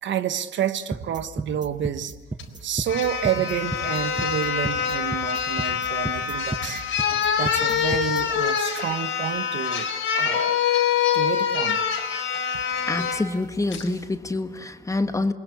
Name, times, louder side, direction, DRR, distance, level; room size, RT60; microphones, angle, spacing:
voice 1, 0.0-2.1 2.6-6.8 7.4-9.9 10.1-10.6 11.1-11.8, right 10 dB, 70° right, 1.3 m, -29 dB
sound 1, 0.9-8.2, right 2 dB, 20° right, 6.0 m, -33 dB
sound 2, 2.4-2.5 2.9-13.2 13.7-13.9, left 8 dB, 75° left, 4.1 m, -25 dB
voice 2, 12.8-15.3, left 2 dB, 15° left, 1.5 m, -26 dB
28.0 x 21.0 x 8.4 m
cardioid pair, 90°, 20 cm